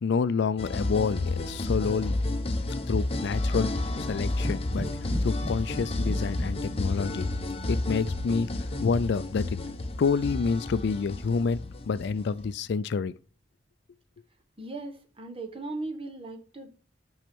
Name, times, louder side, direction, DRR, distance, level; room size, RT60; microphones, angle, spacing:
voice 1, 0.0-2.2 2.9-3.7 4.1-4.9 5.2-7.3 7.7-8.5 8.8-9.6 10.0-13.1, left 5 dB, 65° left, 0.4 m, -28 dB
sound 1, 0.6-12.5, left 2 dB, 30° left, 0.8 m, -31 dB
sound 2, 4.1-7.3, equal, 15° left, 2.1 m, -38 dB
voice 2, 14.6-16.7, right 2 dB, 30° right, 1.1 m, -38 dB
6.1 x 5.6 x 6.0 m
head